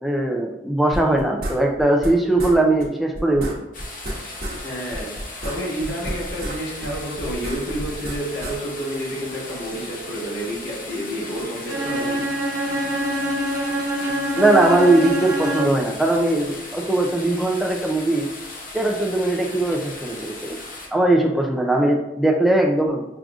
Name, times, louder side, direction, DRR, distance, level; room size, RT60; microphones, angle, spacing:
voice 1, 0.0-3.6 14.4-18.3 18.7-20.6 20.9-23.1, right 2 dB, ahead, 0 dB, 0.3 m, -20 dB
sound 1, 0.9-2.1 2.4-2.5 2.8-2.9 3.1-4.6 4.9-6.6 6.8-8.5, right 1 dB, 60° right, 1.0 m, -30 dB
sound 2, 3.7-20.9, left 2 dB, 50° left, 0.7 m, -37 dB
voice 2, 4.6-12.2, right 1 dB, 75° left, -5 dB, 1.4 m, -30 dB
Bowed string instrument, 11.7-15.9, equal, 20° right, 0.8 m, -25 dB
6.1 x 2.4 x 2.3 m, 0.93 s
head